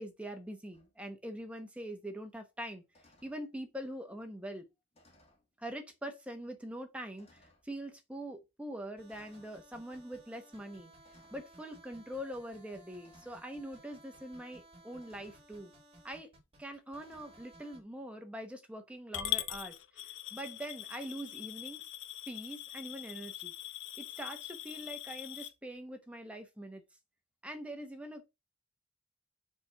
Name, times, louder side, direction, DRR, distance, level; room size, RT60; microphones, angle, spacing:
voice 1, 0.0-2.8 3.2-4.7 5.6-10.9 11.3-15.7 16.0-16.3 16.6-19.8 20.3-21.9 22.3-23.5 24.0-26.8 27.4-28.2, right 1 dB, 5° right, 0.9 m, -43 dB
sound 1, 0.7-0.9 2.9-3.4 4.9-5.5 6.3-6.4 7.2-7.7 9.1-9.6 11.0-11.5 13.0-13.5 15.0-15.5 17.0-17.5, left 1 dB, 35° left, 1.4 m, -65 dB
sound 2, 9.0-17.8, right 1 dB, 30° right, 2.1 m, -58 dB
Coin (dropping) / Glass, 19.1-25.5, left 12 dB, 75° left, 0.7 m, -41 dB
4.7 x 4.2 x 5.4 m
head